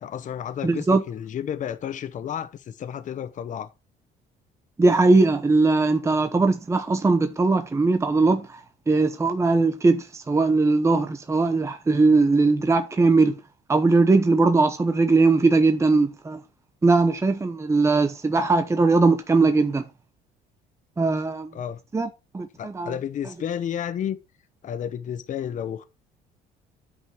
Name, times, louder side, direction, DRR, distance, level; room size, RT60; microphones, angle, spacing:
voice 1, 0.0-3.7 21.5-21.8 22.6-24.2 24.6-25.8, left 9 dB, 50° left, 0.9 m, -31 dB
voice 2, 0.6-1.0 4.8-13.4 13.7-16.4 16.8-19.8 21.0-21.5 21.9-22.9, right 3 dB, 15° right, 0.9 m, -20 dB
9.6 x 5.4 x 4.4 m
cardioid pair, 110°, 17 cm